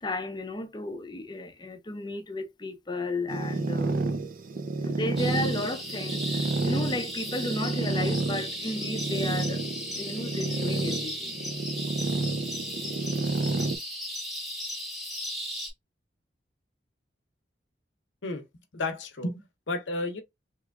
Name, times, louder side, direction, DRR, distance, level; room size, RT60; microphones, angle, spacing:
voice 1, 0.0-4.0 4.8-9.6 10.0-11.4, left 2 dB, 25° left, 0.5 m, -34 dB
sound 1, 3.3-13.8, right 3 dB, 50° right, 0.4 m, -30 dB
sound 2, 5.2-15.7, equal, ahead, 0.9 m, -36 dB
voice 2, 18.7-20.2, left 2 dB, 80° left, 0.7 m, -32 dB
2.9 x 2.3 x 3.5 m
head